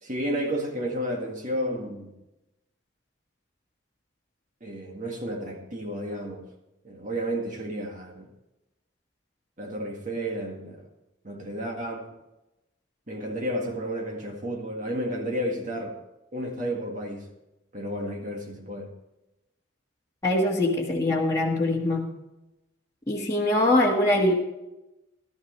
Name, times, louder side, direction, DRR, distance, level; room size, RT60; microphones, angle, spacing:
voice 1, 0.0-2.2 4.6-6.5 6.8-8.3 9.6-10.8 11.2-12.1 13.1-16.0 16.3-17.3 17.7-19.0, equal, 40° right, 1.9 m, -32 dB
voice 2, 20.2-22.1 23.1-24.3, left 1 dB, 15° left, 1.6 m, -23 dB
15.0 x 13.5 x 3.2 m
head